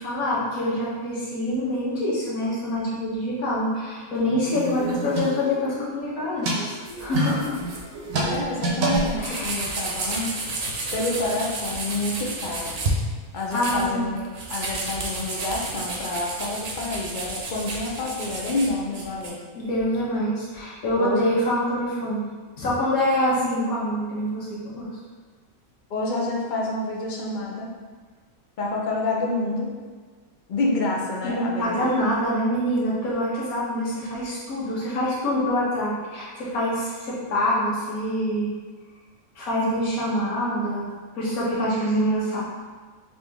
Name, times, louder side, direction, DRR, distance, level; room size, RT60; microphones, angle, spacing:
voice 1, 0.0-7.6 9.2-9.8 13.5-14.1 19.5-22.3 22.6-24.9 31.2-38.5 39.4-42.4, left 1 dB, 90° left, -6 dB, 1.5 m, -25 dB
sound 1, 4.4-5.8 6.2-9.7, right 2 dB, 80° right, 1.2 m, -27 dB
sound 2, 6.9-7.8 8.2-8.4 8.6-8.7 9.0-12.9 13.4-19.3, right 2 dB, 55° right, 0.9 m, -32 dB
voice 2, 8.2-10.3 10.9-12.8 13.3-14.2 14.5-19.4 21.0-21.2 25.9-27.7 28.6-29.7 30.5-31.9, left 2 dB, 65° left, -2 dB, 0.5 m, -28 dB
4.1 x 2.8 x 3.4 m, 1.5 s
omnidirectional pair, 1.5 m